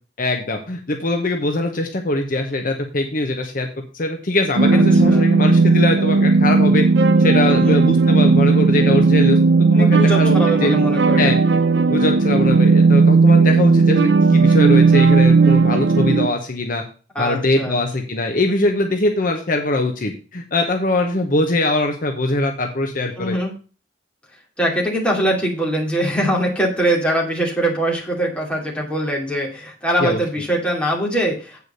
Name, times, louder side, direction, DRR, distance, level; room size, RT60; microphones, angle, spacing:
voice 1, 0.2-3.7 3.9-6.8 7.2-9.4 9.7-10.4 10.6-10.7 11.2-11.4 11.9-16.8 17.2-23.4 30.0-30.2, left 2 dB, 50° left, 4 dB, 1.0 m, -22 dB
sound 1, 4.6-16.3, right 4 dB, 70° right, 0.6 m, -14 dB
voice 2, 4.7-5.3 7.4-7.8 9.7-11.3 17.1-17.8 23.2-23.5 24.6-31.6, right 1 dB, 5° left, -3 dB, 2.5 m, -22 dB
8.2 x 4.7 x 6.7 m, 0.37 s
head